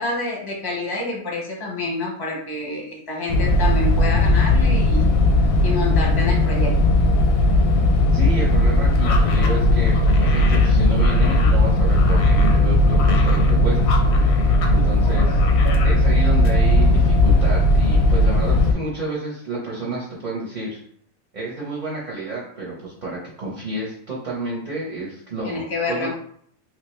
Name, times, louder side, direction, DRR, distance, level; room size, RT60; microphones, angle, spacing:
voice 1, 0.0-5.1 5.6-6.8 15.1-15.3 15.6-15.8 25.4-26.1, left 2 dB, 20° left, -1 dB, 0.6 m, -28 dB
sound 1, 3.3-18.7, left 1 dB, 85° left, 1.0 m, -17 dB
voice 2, 8.1-14.0 14.6-15.4 15.8-20.8 21.3-26.1, right 2 dB, 40° right, -5 dB, 0.7 m, -30 dB
sound 2, 8.9-14.8 15.0-16.0, left 4 dB, 65° left, 0.7 m, -33 dB
3.5 x 2.8 x 3.1 m, 0.62 s
omnidirectional pair, 1.5 m